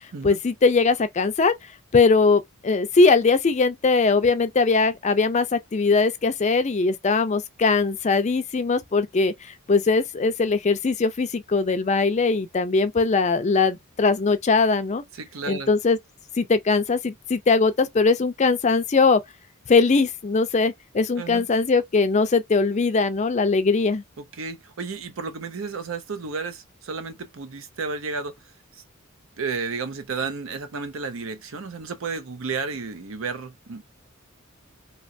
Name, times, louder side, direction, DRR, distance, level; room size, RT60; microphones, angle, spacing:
voice 1, 0.2-1.5 1.9-15.0 15.5-16.0 16.4-19.2 19.7-24.0, left 4 dB, 35° left, 0.4 m, -21 dB
voice 2, 15.1-15.7 21.2-21.5 24.2-28.4 29.4-33.8, right 4 dB, 70° right, 0.6 m, -32 dB
3.0 x 2.9 x 2.6 m
head